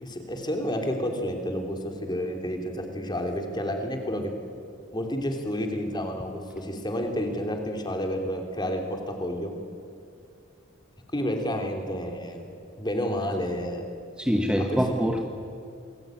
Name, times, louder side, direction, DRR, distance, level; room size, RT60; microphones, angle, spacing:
voice 1, 0.0-4.3 4.9-9.5 11.1-12.5 12.8-13.8 14.6-14.8, equal, 20° left, 4 dB, 3.2 m, -30 dB
voice 2, 14.2-15.3, equal, 5° right, 3 dB, 1.3 m, -24 dB
28.0 x 21.5 x 9.2 m, 2.4 s
head